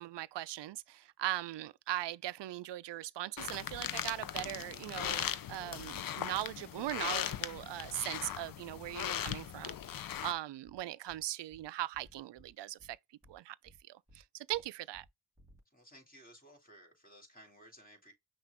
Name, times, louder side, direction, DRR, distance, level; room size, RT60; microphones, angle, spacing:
voice 1, 0.0-13.0 13.3-13.6 13.9-15.1, right 15 dB, 70° right, 0.5 m, -40 dB
sound 1, 3.4-10.3, left 10 dB, 50° left, 0.5 m, -39 dB
sound 2, 8.9-9.1 9.4-9.5 9.8-9.9 10.2-10.4 10.7-10.8 11.1-11.2 11.5-11.6 11.9-12.5 12.8-12.9 13.2-13.4 13.7-13.8 14.1-14.2 14.5-14.6 14.9-15.1 15.4-15.6, equal, 5° right, 2.8 m, -61 dB
voice 2, 15.7-18.1, equal, 20° left, 2.6 m, -57 dB
5.8 x 2.5 x 3.5 m
cardioid pair, 60°, 44 cm